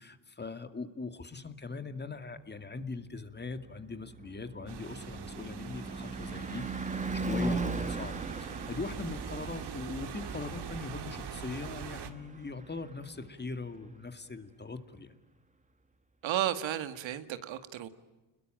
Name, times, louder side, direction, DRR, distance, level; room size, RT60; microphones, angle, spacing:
voice 1, 0.0-15.2, left 3 dB, 20° left, 9 dB, 2.3 m, -41 dB
Car passing by / Truck / Engine, 3.3-13.5, right 3 dB, 15° right, 2.4 m, -39 dB
sound 1, 4.7-12.1, right 7 dB, 55° right, 2.5 m, -43 dB
voice 2, 16.2-17.9, right 12 dB, 75° right, 10 dB, 2.0 m, -33 dB
30.0 x 21.5 x 9.0 m, 1.1 s
cardioid pair, 90°, 47 cm